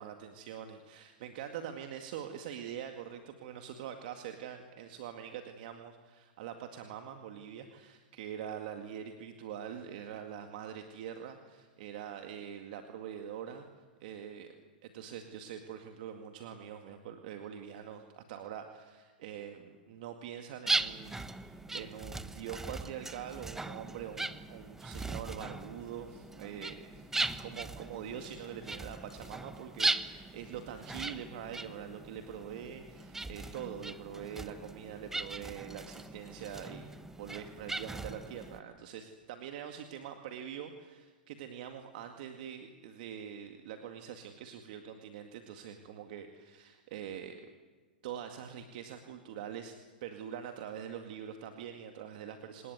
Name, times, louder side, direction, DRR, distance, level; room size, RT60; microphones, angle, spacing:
voice 1, 0.0-27.1 27.4-36.9 37.2-47.4 48.0-52.7, right 9 dB, 55° right, 5 dB, 2.1 m, -44 dB
sound 1, 20.7-38.6, right 2 dB, 5° right, 1.1 m, -39 dB
26.5 x 19.0 x 9.4 m, 1.5 s
hypercardioid pair, 120°, 5 cm